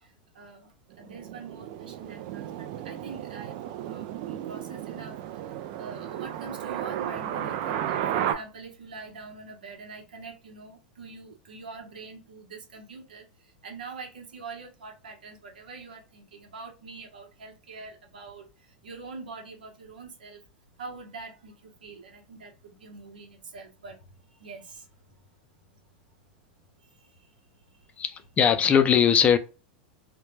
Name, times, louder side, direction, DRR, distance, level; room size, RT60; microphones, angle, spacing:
voice 1, 0.0-5.5 5.8-20.4 20.8-25.2 26.8-27.9, right 4 dB, 85° right, 0.9 m, -44 dB
sound 1, 0.9-8.3, right 11 dB, 60° right, 0.4 m, -33 dB
voice 2, 28.0-29.4, left 8 dB, 30° left, 0.4 m, -20 dB
2.1 x 2.1 x 3.1 m
hypercardioid pair, 110°, 5 cm